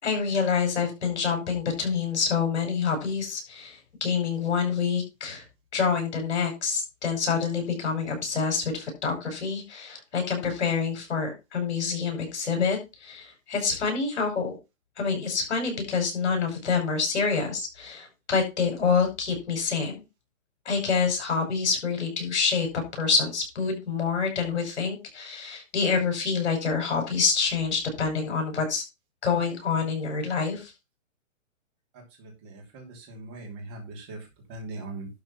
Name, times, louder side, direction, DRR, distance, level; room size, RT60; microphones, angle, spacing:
voice 1, 0.0-5.4 5.7-14.6 15.0-20.0 20.6-28.8 29.2-30.7, left 5 dB, 60° left, 3 dB, 6.1 m, -27 dB
voice 2, 32.2-34.2 34.5-35.1, right 2 dB, 20° right, 1 dB, 2.9 m, -40 dB
11.5 x 4.8 x 5.7 m, 0.26 s
hypercardioid pair, 175°, 39 cm